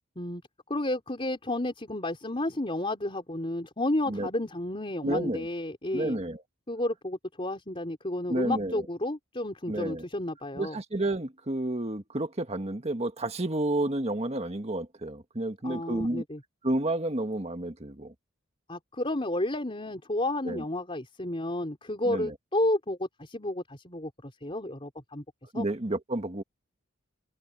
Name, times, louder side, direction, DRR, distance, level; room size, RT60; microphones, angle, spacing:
voice 1, 0.7-6.2 6.7-10.8 15.6-16.4 18.7-25.2 25.5-25.7, left 1 dB, 25° left, 3.7 m, -31 dB
voice 2, 5.0-5.4 5.9-6.4 8.3-8.8 9.7-10.0 10.5-16.2 16.6-18.1 20.4-20.6 22.1-22.3 25.5-26.4, right 1 dB, 30° right, 1.6 m, -30 dB
head